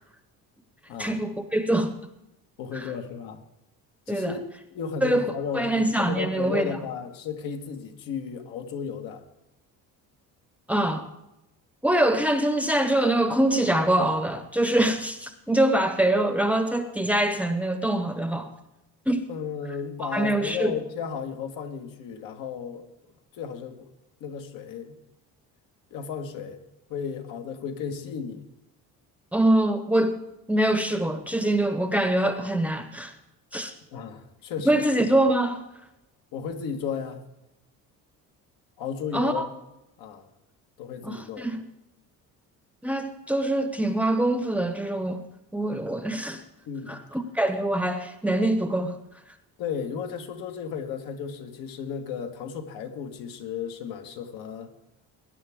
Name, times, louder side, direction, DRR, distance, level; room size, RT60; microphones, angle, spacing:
voice 1, 1.0-2.0 2.7-2.9 4.1-4.4 5.0-6.8 10.7-11.0 11.8-18.5 19.1-19.3 20.0-20.7 29.3-30.2 30.5-33.1 33.5-33.7 34.6-35.6 39.1-39.5 41.0-41.6 42.8-45.2 45.5-46.4 46.9-49.0, right 1 dB, 5° right, 8 dB, 0.8 m, -24 dB
voice 2, 2.6-3.4 4.1-9.2 19.3-22.9 23.3-23.9 24.2-24.9 25.9-26.6 26.9-28.4 33.9-34.8 36.3-37.2 38.8-39.5 40.0-40.3 40.8-41.5 46.7-47.0 49.6-54.7, left 7 dB, 75° left, 5 dB, 1.6 m, -34 dB
19.0 x 10.0 x 3.6 m, 0.88 s
cardioid pair, 150°, 34 cm